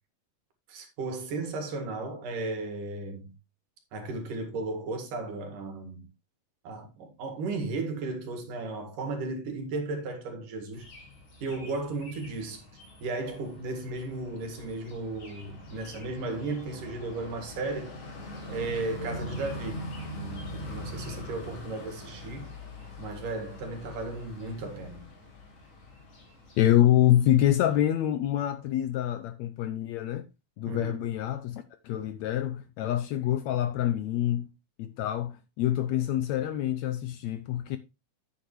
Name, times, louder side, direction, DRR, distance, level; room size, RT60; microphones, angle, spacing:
voice 1, 0.7-3.3 3.9-6.1 6.6-10.9 11.4-12.6 13.0-18.0 18.5-22.6 23.0-25.1 30.7-31.0, right 3 dB, 80° right, 3.5 m, -35 dB
sound 1, 10.7-27.8, left 1 dB, 60° left, 4.6 m, -43 dB
voice 2, 26.6-30.3 30.6-34.5 34.8-37.8, left 12 dB, 80° left, 1.7 m, -26 dB
10.0 x 8.1 x 3.2 m
omnidirectional pair, 3.7 m